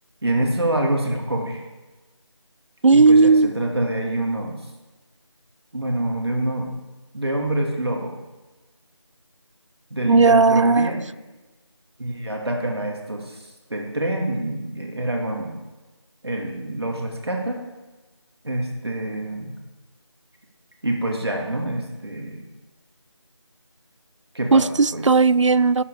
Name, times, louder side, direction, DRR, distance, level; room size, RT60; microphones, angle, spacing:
voice 1, 0.2-1.6 2.9-4.5 5.7-6.7 7.1-8.2 9.9-11.0 12.0-15.6 16.2-17.6 18.4-19.5 20.8-22.4 24.3-24.6 24.9-25.0, right 1 dB, 55° right, 1 dB, 2.7 m, -26 dB
voice 2, 2.8-3.5 10.1-10.9 24.5-25.8, right 4 dB, 80° right, 20 dB, 0.4 m, -15 dB
12.5 x 8.3 x 5.0 m, 1.2 s
figure-of-eight pair, 175°, 15 cm